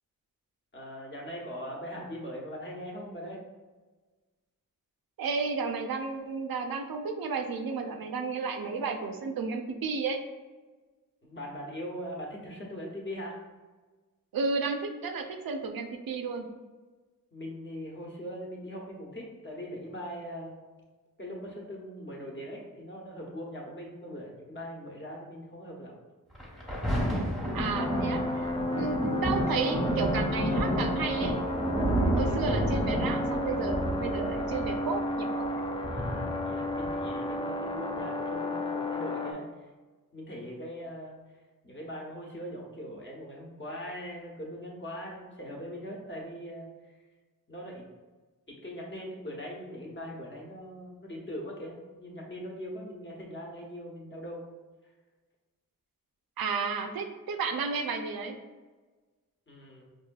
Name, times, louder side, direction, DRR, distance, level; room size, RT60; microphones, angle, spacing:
voice 1, 0.7-3.4 11.2-13.4 17.3-20.6 21.2-25.9 32.2-32.5 35.9-39.5 40.1-41.2 41.6-46.7 47.5-47.8 48.5-54.5 59.5-59.9, equal, 35° left, -2 dB, 1.0 m, -41 dB
voice 2, 5.2-10.2 14.3-16.5 27.5-31.4 32.2-35.5 56.4-58.4, right 4 dB, 85° right, 5 dB, 0.5 m, -32 dB
Thunder, 26.3-37.3 38.0-38.1, equal, ahead, 1.0 m, -31 dB
sound 1, 27.7-39.3, left 1 dB, 15° left, 0.3 m, -32 dB
4.8 x 2.6 x 2.3 m, 1.3 s
wide cardioid pair, 75°, 35 cm